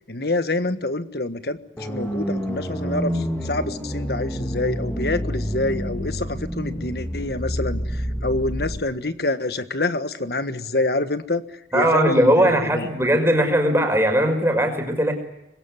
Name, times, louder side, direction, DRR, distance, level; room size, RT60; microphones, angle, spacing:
voice 1, 0.1-11.4 11.7-12.9, left 2 dB, 55° left, 11 dB, 1.5 m, -27 dB
sound 1, 1.8-8.8, equal, 10° left, 4.0 m, -28 dB
voice 2, 11.7-15.1, equal, 15° right, 4 dB, 5.4 m, -19 dB
25.5 x 21.5 x 9.6 m, 0.87 s
head